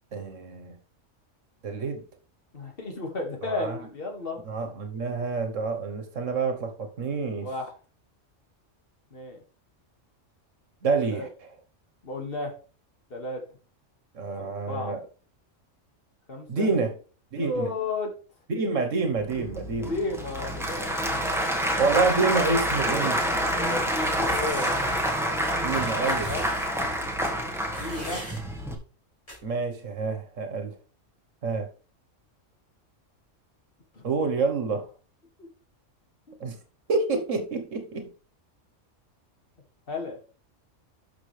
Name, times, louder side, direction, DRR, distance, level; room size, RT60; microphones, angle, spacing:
voice 1, 0.1-0.7 1.6-2.0 3.4-3.8 4.5-7.5 10.8-11.5 14.1-15.0 16.5-17.0 17.3-17.7 18.5-19.9 21.8-23.5 25.6-26.3 29.4-30.8 31.4-31.7 34.0-34.9 36.4-36.6 36.9-38.1, right 4 dB, 75° right, 1.6 m, -28 dB
voice 2, 2.5-4.4 7.4-7.7 9.1-9.4 11.1-11.3 12.0-12.6 13.1-13.4 14.4-14.9 16.3-16.7 17.4-18.1 19.9-21.4 23.5-24.7 26.3-26.5 27.7-28.2 33.9-34.0 36.3-36.4 39.9-40.2, left 3 dB, 45° left, 2.3 m, -33 dB
Applause / Crowd, 19.2-28.7, equal, ahead, 1.5 m, -27 dB
sound 1, 23.8-25.0 25.7-26.7 27.7-28.4 29.3-29.4, equal, 25° left, 4.5 m, -41 dB
12.0 x 6.1 x 3.4 m
omnidirectional pair, 1.3 m